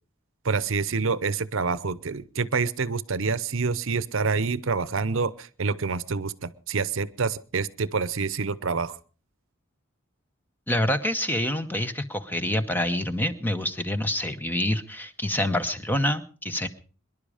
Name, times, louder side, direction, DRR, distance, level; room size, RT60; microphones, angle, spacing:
voice 1, 0.4-9.0, right 4 dB, 65° right, 18 dB, 0.8 m, -27 dB
voice 2, 10.7-16.7, left 1 dB, 10° left, 10 dB, 0.9 m, -27 dB
24.5 x 11.0 x 5.0 m, 0.39 s
head